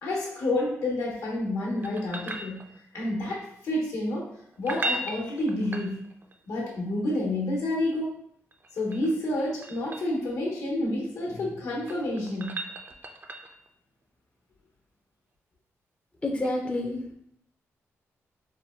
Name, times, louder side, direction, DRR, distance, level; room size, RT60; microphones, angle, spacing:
voice 1, 0.0-2.6 2.9-4.3 4.6-6.0 6.5-8.2 8.7-12.6, left 1 dB, 80° left, -3 dB, 1.1 m, -29 dB
sound 1, 1.8-3.1 4.5-6.4 8.5-10.2 11.6-13.7 16.4-16.5, right 2 dB, 35° right, 0.4 m, -37 dB
voice 2, 16.2-17.1, left 2 dB, 20° left, 1 dB, 0.4 m, -29 dB
4.2 x 2.2 x 2.3 m, 0.70 s
cardioid pair, 75°, 5 cm